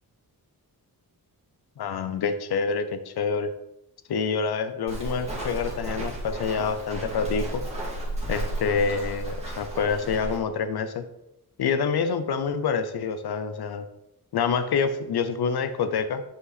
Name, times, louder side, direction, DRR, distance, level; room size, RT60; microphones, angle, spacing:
voice 1, 1.8-3.5 4.1-7.6 8.3-11.0 11.6-13.9 14.3-16.2, left 5 dB, 75° left, 10 dB, 0.6 m, -27 dB
Walk footsteps, 4.9-10.4, right 1 dB, 15° right, 2.0 m, -33 dB
8.2 x 5.4 x 4.0 m, 0.87 s
wide cardioid pair, 170°, 38 cm